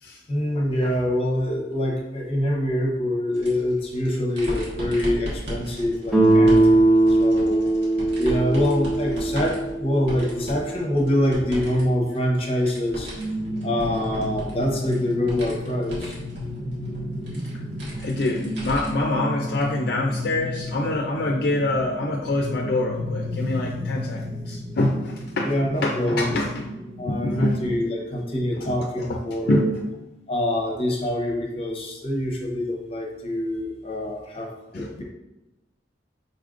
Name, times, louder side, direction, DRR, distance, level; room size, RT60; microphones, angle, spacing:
voice 1, 0.3-6.9 7.2-7.6 8.2-13.1 13.6-16.1 25.4-26.3 27.0-29.6 30.3-35.0, left 1 dB, 35° left, 0 dB, 0.8 m, -25 dB
sound 1, 3.3-11.8 12.1-19.1 19.5-19.6 20.8-20.9, equal, 80° right, 1.5 m, -36 dB
Guitar, 6.1-10.9, right 2 dB, ahead, 0.8 m, -20 dB
sound 2, 13.1-27.3, left 1 dB, 65° right, 1.5 m, -33 dB
voice 2, 18.0-25.5 25.8-26.7 27.1-27.6 28.7-29.2 29.5-29.8 34.7-35.0, left 2 dB, 60° left, 0 dB, 0.5 m, -25 dB
5.0 x 4.1 x 2.5 m, 0.99 s
head